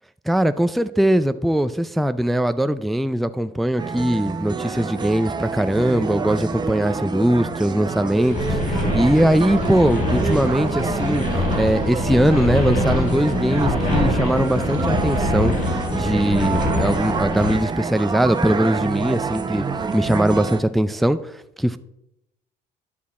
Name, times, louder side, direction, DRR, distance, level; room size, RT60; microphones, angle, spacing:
voice 1, 0.3-11.2 11.6-19.7 19.9-21.8, right 1 dB, ahead, 11 dB, 0.3 m, -21 dB
sound 1, 3.8-20.6, right 5 dB, 25° right, 0.7 m, -27 dB
sound 2, 8.2-17.5, left 1 dB, 50° left, 4.2 m, -24 dB
10.5 x 7.2 x 4.2 m, 0.82 s
cardioid pair, 120°, 18 cm